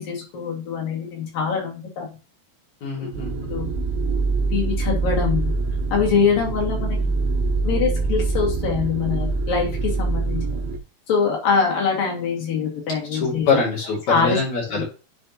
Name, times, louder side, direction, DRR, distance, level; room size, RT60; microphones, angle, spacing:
voice 1, 0.0-2.1 3.0-3.1 3.5-3.7 4.4-5.5 5.9-7.0 7.6-10.5 11.1-13.6 14.1-14.4, left 6 dB, 70° left, -1 dB, 4.0 m, -23 dB
voice 2, 2.8-3.5 13.1-14.8, left 4 dB, 55° left, -5 dB, 3.9 m, -24 dB
sound 1, 3.1-10.8, right 3 dB, 90° right, 2.6 m, -24 dB
10.0 x 4.4 x 3.0 m, 0.32 s
omnidirectional pair, 4.2 m